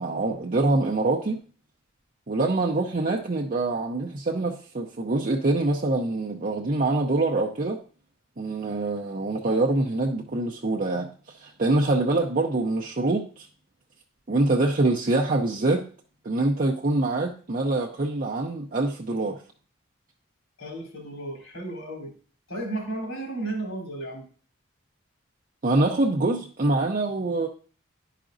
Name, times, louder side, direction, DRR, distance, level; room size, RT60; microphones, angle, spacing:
voice 1, 0.0-1.4 2.3-7.8 8.4-13.5 14.3-15.9 16.2-19.4 25.6-27.5, right 2 dB, 40° right, 0 dB, 0.6 m, -25 dB
voice 2, 20.6-22.1 22.5-24.2, right 2 dB, 65° left, -1 dB, 3.1 m, -33 dB
11.5 x 5.0 x 2.6 m, 0.41 s
head